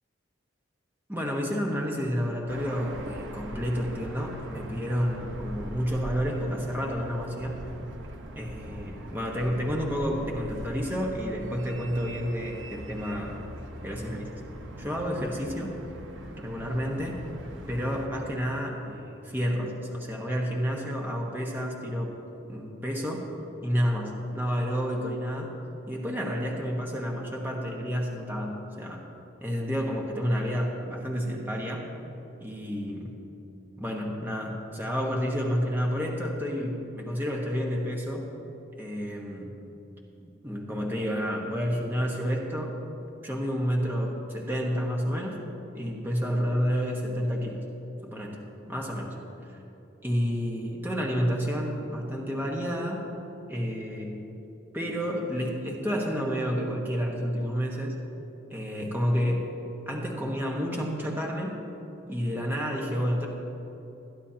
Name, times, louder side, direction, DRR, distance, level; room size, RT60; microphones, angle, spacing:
voice 1, 1.1-7.6 8.3-13.4 13.8-14.4 14.8-15.8 16.4-17.2 17.7-22.1 22.5-23.3 23.6-25.5 25.9-29.1 29.4-31.9 32.4-33.1 33.8-38.2 38.8-39.5 40.2-42.7 43.2-45.4 45.7-47.6 48.0-49.2 49.5-49.6 50.0-53.1 53.5-54.2 54.7-57.9 58.5-59.5 59.9-61.6 62.1-63.3, equal, 10° right, -2 dB, 1.3 m, -30 dB
sound 1, 2.5-18.1, right 1 dB, 80° right, 1.1 m, -41 dB
21.5 x 11.0 x 2.9 m, 2.9 s
head